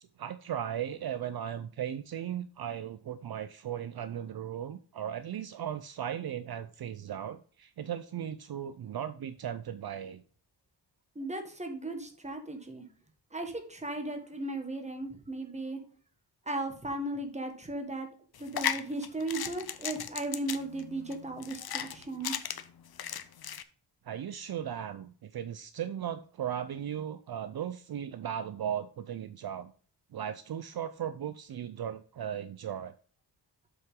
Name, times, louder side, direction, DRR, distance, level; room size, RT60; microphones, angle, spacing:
voice 1, 0.2-10.2 24.0-29.7 30.1-32.9, right 9 dB, 60° right, 12 dB, 0.5 m, -37 dB
voice 2, 11.1-12.8 13.3-15.8 16.4-18.1 18.4-22.5, right 2 dB, 15° right, 4 dB, 1.6 m, -36 dB
sound 1, 18.3-23.6, left 9 dB, 60° left, 0.7 m, -36 dB
7.7 x 6.1 x 3.7 m, 0.43 s
wide cardioid pair, 130°, 42 cm